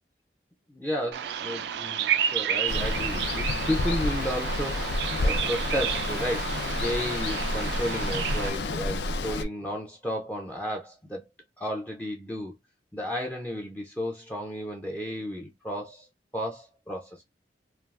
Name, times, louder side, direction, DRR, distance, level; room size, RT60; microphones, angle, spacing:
voice 1, 0.7-11.3 11.6-12.5 12.9-16.1 16.3-17.2, equal, 10° left, 0.4 m, -33 dB
Bird vocalization bird call bird song, 1.1-8.5, right 9 dB, 70° right, 0.3 m, -31 dB
Water, 2.7-9.4, left 2 dB, 75° left, 0.4 m, -30 dB
3.3 x 2.3 x 2.3 m
head